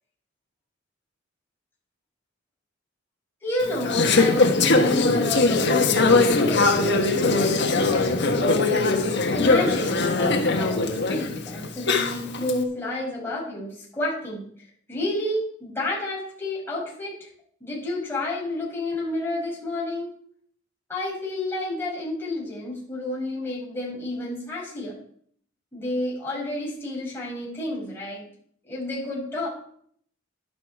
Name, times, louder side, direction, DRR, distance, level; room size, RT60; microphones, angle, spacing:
voice 1, 3.4-8.7 9.0-14.5 14.9-17.3 17.6-20.1 20.9-24.9 25.7-28.3 28.6-29.5, left 1 dB, 10° left, -5 dB, 5.7 m, -30 dB
Conversation / Chatter, 3.6-12.5, left 3 dB, 60° left, 1.5 m, -21 dB
11.5 x 11.0 x 4.7 m, 0.63 s
head